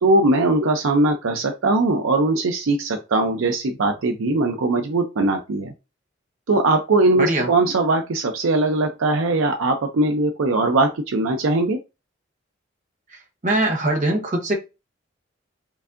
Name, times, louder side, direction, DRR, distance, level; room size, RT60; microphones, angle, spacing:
voice 1, 0.0-5.7 6.5-11.8, right 2 dB, 80° right, 4 dB, 0.5 m, -20 dB
voice 2, 7.2-7.5 13.4-14.5, right 1 dB, 40° right, 2 dB, 0.9 m, -21 dB
4.6 x 2.7 x 2.5 m, 0.27 s
head